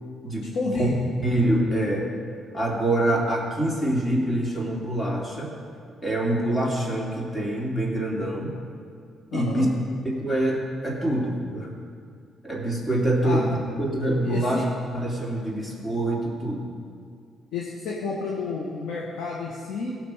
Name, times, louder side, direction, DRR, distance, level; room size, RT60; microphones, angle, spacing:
voice 1, 0.5-1.0 9.3-9.7 13.2-13.4 14.2-14.6 17.5-20.0, left 4 dB, 85° left, -3 dB, 1.1 m, -30 dB
voice 2, 1.2-2.1 2.5-5.5 6.0-8.5 9.3-9.7 10.0-11.7 12.4-14.7 14.9-16.6, right 1 dB, 15° left, -3 dB, 2.7 m, -25 dB
16.5 x 6.0 x 5.0 m, 2.2 s
cardioid pair, 90°, 0 cm